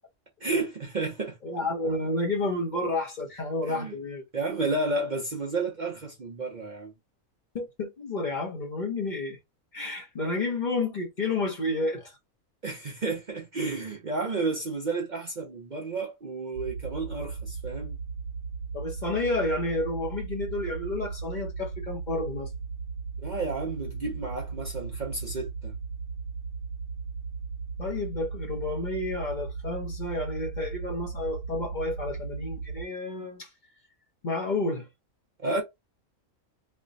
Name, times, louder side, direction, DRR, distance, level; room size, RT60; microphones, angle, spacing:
voice 1, 0.4-1.4 3.7-4.0 4.3-6.9 12.6-18.0 23.2-25.7 35.4-35.6, right 3 dB, 45° right, 0.7 m, -31 dB
voice 2, 1.4-4.3 7.5-9.4 9.7-12.2 18.7-22.5 27.8-33.5 34.2-34.9, left 2 dB, 40° left, 0.9 m, -30 dB
sound 1, 16.5-32.8, right 5 dB, 65° right, 1.1 m, -37 dB
3.2 x 2.2 x 3.9 m
omnidirectional pair, 1.4 m